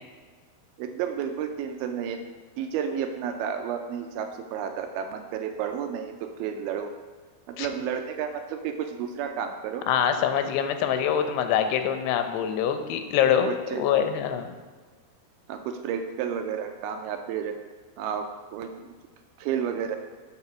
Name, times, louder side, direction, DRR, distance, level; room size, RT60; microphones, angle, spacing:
voice 1, 0.8-2.2 2.6-6.9 7.5-9.9 13.5-13.9 15.5-17.6 18.0-18.9 19.4-20.0, right 8 dB, 80° right, 6 dB, 2.3 m, -31 dB
voice 2, 9.9-13.5 13.8-14.5, left 9 dB, 90° left, 8 dB, 2.8 m, -24 dB
8.5 x 4.6 x 6.0 m, 1.5 s
omnidirectional pair, 4.7 m